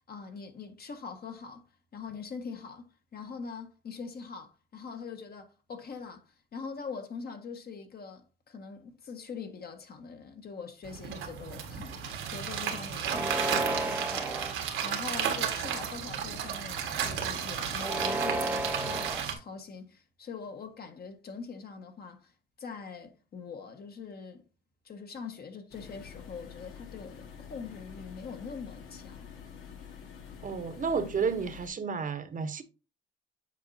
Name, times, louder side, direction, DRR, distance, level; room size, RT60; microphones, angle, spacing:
voice 1, 0.1-1.7 1.9-22.3 22.6-24.4 24.8-29.3, left 5 dB, 50° left, 1.4 m, -43 dB
sound 1, 10.8-19.3, right 8 dB, 90° right, 1.6 m, -33 dB
sound 2, 13.0-14.5 15.2-15.8 17.7-19.2, right 2 dB, 10° right, 0.6 m, -33 dB
sound 3, 25.7-31.7, left 7 dB, 90° left, 1.5 m, -47 dB
voice 2, 30.4-32.6, right 5 dB, 40° right, 0.9 m, -31 dB
8.3 x 4.7 x 2.7 m
cardioid pair, 90°, 20 cm